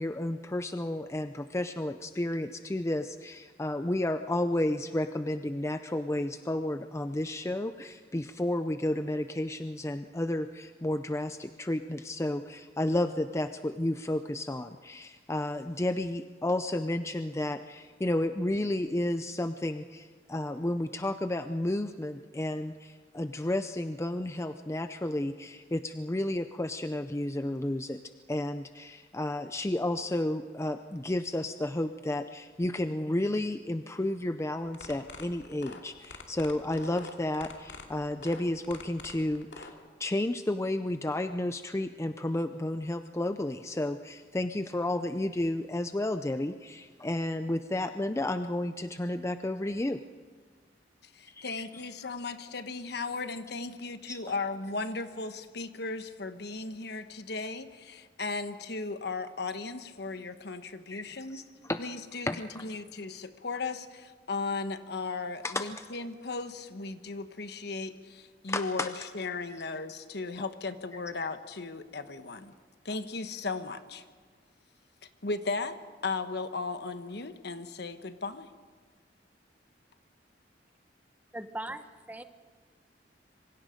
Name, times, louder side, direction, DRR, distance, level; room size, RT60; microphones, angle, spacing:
voice 1, 0.0-28.0 28.3-39.7 40.0-50.0 51.3-51.5 54.1-54.3 60.9-61.0 61.3-61.8 62.3-62.6 65.4-65.6 68.5-68.9, left 1 dB, 15° left, 9 dB, 0.5 m, -32 dB
sound 1, 34.6-39.7, left 4 dB, 90° left, 2.6 m, -45 dB
voice 2, 51.0-61.4 61.8-72.5 72.8-74.0 75.2-75.8 76.0-78.5, left 3 dB, 65° left, 9 dB, 1.2 m, -36 dB
voice 3, 81.3-82.2, right 1 dB, 10° right, 9 dB, 0.9 m, -39 dB
26.5 x 24.0 x 5.2 m, 1.5 s
head